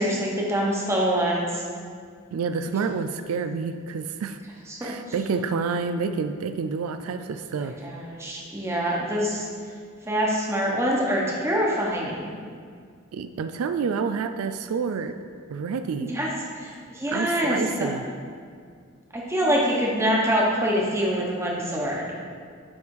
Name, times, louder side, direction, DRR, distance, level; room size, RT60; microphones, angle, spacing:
voice 1, 0.0-1.6 4.7-4.9 7.6-9.5 10.1-12.3 16.0-16.3 16.6-17.9 19.1-22.1, equal, 15° right, -3 dB, 1.1 m, -25 dB
voice 2, 2.3-4.4 4.8-7.8 13.1-15.2 15.5-16.1 17.1-18.0, right 5 dB, 85° right, 9 dB, 0.4 m, -28 dB
9.5 x 3.4 x 4.7 m, 2.1 s
head